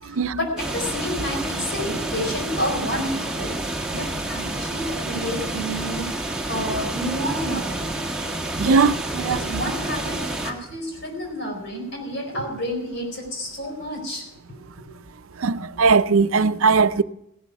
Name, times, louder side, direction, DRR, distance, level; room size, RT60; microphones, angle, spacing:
voice 1, 0.0-3.5 3.9-6.1 6.5-7.9 8.6-8.8 9.3-14.6 14.9-15.0, equal, 60° left, 4.5 m, -30 dB
sound 1, 0.6-10.5, right 2 dB, 5° right, 1.4 m, -29 dB
voice 2, 8.6-9.4 15.4-17.0, right 4 dB, 80° right, 0.6 m, -19 dB
16.0 x 11.5 x 4.6 m
head